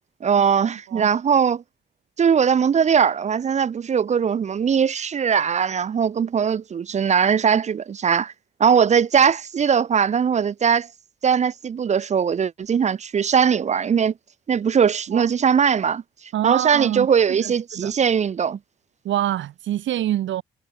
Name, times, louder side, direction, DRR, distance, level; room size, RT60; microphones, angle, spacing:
voice 1, 0.2-1.6 2.2-8.3 8.6-10.9 11.2-14.1 14.5-16.0 16.4-18.6, right 7 dB, 35° right, 0.5 m, -20 dB
voice 2, 16.3-17.9 19.0-20.4, right 13 dB, 75° right, 1.5 m, -26 dB
cardioid pair, 90°, 20 cm